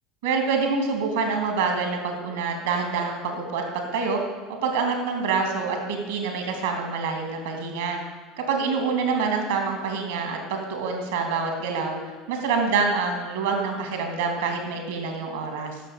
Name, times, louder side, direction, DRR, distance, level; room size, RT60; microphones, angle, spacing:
voice 1, 0.2-4.2 4.6-8.0 8.4-12.0 12.3-15.8, right 4 dB, 70° right, 3 dB, 2.6 m, -26 dB
11.0 x 7.0 x 8.3 m, 1.4 s
figure-of-eight pair, 70°, 0 cm